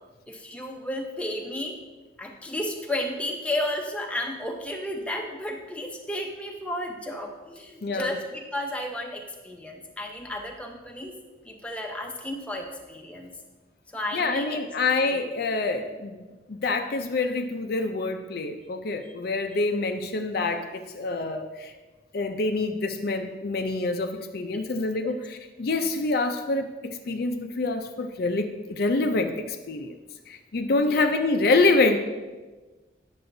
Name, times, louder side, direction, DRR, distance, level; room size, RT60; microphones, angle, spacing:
voice 1, 0.3-1.8 2.2-11.1 11.5-13.3 13.9-14.6 15.0-15.3 25.0-25.1 30.9-31.1, left 1 dB, 5° left, 1 dB, 0.6 m, -33 dB
voice 2, 7.8-8.1 14.1-16.2 16.5-21.7 22.1-30.0 30.3-32.0, left 3 dB, 55° left, 6 dB, 0.4 m, -26 dB
9.3 x 6.8 x 2.6 m, 1.2 s
head